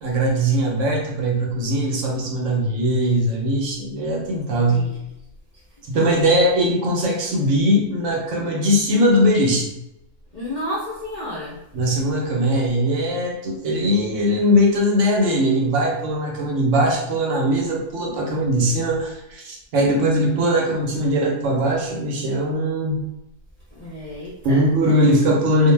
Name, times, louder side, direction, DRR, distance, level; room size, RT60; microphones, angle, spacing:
voice 1, 0.0-4.9 5.8-9.7 11.7-23.0 24.4-25.7, equal, 70° right, -1 dB, 0.9 m, -20 dB
voice 2, 10.3-11.6 23.7-25.1, left 1 dB, 50° left, -7 dB, 0.5 m, -32 dB
2.4 x 2.0 x 3.2 m, 0.88 s
omnidirectional pair, 1.4 m